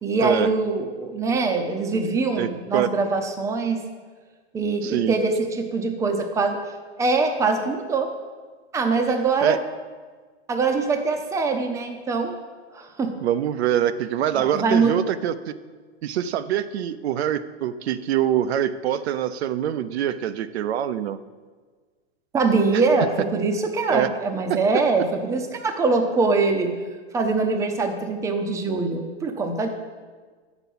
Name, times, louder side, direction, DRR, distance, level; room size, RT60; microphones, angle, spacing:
voice 1, 0.0-3.8 4.5-6.6 7.0-8.1 8.7-9.6 10.5-12.4 12.7-13.1 14.4-15.0 22.3-26.7 27.1-29.7, right 3 dB, 10° right, 5 dB, 0.6 m, -23 dB
voice 2, 2.4-2.9 4.8-5.2 9.4-9.6 13.2-15.5 16.0-21.2 22.7-22.8 23.9-24.1 24.5-24.6, right 10 dB, 70° right, 12 dB, 0.5 m, -24 dB
8.0 x 6.1 x 5.5 m, 1.5 s
hypercardioid pair, 135°, 33 cm